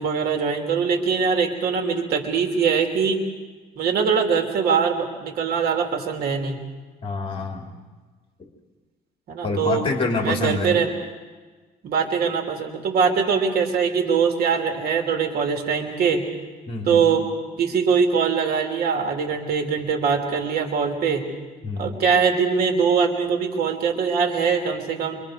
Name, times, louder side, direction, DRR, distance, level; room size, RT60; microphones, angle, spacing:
voice 1, 0.0-3.2 3.8-6.6 9.3-9.9 10.2-10.9 11.8-16.2 16.9-17.2 17.6-21.2 21.8-25.2, right 6 dB, 65° right, 2 dB, 3.0 m, -22 dB
voice 2, 7.0-7.7 8.4-8.5 9.4-10.7 16.7-17.1 21.6-22.0, left 3 dB, 35° left, 1 dB, 2.9 m, -26 dB
26.5 x 24.5 x 5.1 m, 1.3 s
cardioid pair, 110°, 17 cm